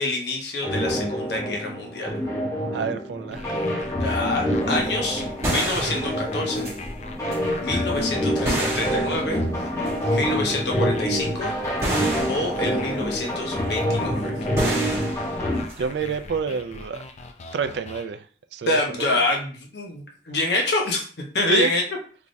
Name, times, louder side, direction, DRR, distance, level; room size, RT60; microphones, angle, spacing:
voice 1, 0.0-2.1 4.0-6.7 7.6-9.4 10.1-11.6 12.3-14.4 18.6-21.0 21.3-21.8, left 2 dB, 70° left, 0 dB, 0.9 m, -26 dB
sound 1, 0.6-15.6, equal, 20° left, 0.8 m, -26 dB
voice 2, 2.7-3.5 15.8-17.0 17.5-18.2 18.5-19.0 21.5-21.7, right 5 dB, 70° right, 9 dB, 0.3 m, -28 dB
sound 2, 3.3-18.1, left 3 dB, 40° left, 0.4 m, -41 dB
sound 3, 4.5-16.3, right 1 dB, 20° right, 1.6 m, -31 dB
3.5 x 3.2 x 2.6 m, 0.42 s
head